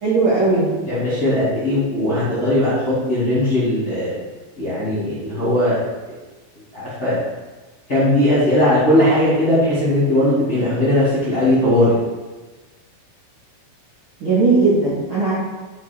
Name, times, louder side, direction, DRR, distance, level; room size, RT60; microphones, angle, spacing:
voice 1, 0.0-0.7 14.2-15.3, right 3 dB, 75° right, -10 dB, 1.1 m, -17 dB
voice 2, 0.8-4.1 4.6-5.8 6.5-7.2 7.9-11.9, left 1 dB, 35° left, -11 dB, 1.5 m, -18 dB
8.3 x 5.0 x 4.5 m, 1.2 s
omnidirectional pair, 6.0 m